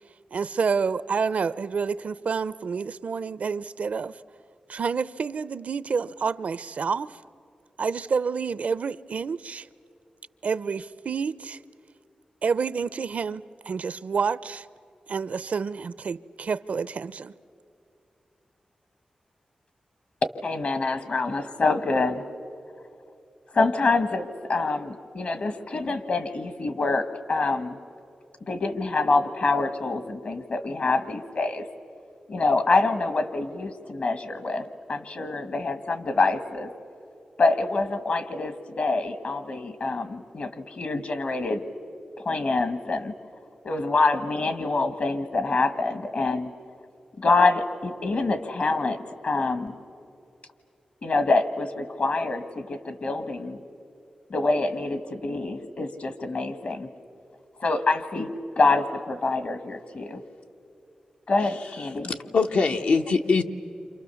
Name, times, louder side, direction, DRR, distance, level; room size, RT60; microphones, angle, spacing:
voice 1, 0.3-4.2 4.7-7.2 7.8-9.7 10.4-11.6 12.4-14.7 15.1-17.3, right 5 dB, 70° right, 0.5 m, -28 dB
voice 2, 20.4-22.3 23.5-27.8 28.4-31.6 32.3-36.7 37.4-41.6 42.2-43.1 43.6-46.5 47.2-49.8 51.0-53.6 54.3-56.9 57.6-60.2 61.3-62.1, left 3 dB, 65° left, 1.6 m, -26 dB
voice 3, 62.1-63.4, left 4 dB, 85° left, 1.1 m, -22 dB
29.0 x 27.0 x 7.0 m
wide cardioid pair, 90°, 3 cm